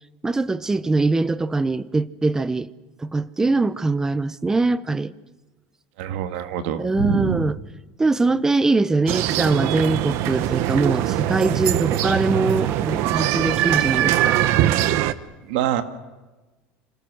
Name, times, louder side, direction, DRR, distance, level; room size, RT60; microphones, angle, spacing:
voice 1, 0.2-2.7 3.0-5.1 6.8-7.6 8.0-14.4, right 3 dB, 10° right, 0.8 m, -22 dB
voice 2, 6.0-7.5 15.0-15.1 15.4-15.8, right 9 dB, 85° right, 2.0 m, -25 dB
sound 1, 9.1-15.1, right 13 dB, 60° right, 1.1 m, -22 dB
27.5 x 26.5 x 6.3 m
cardioid pair, 150°, 5 cm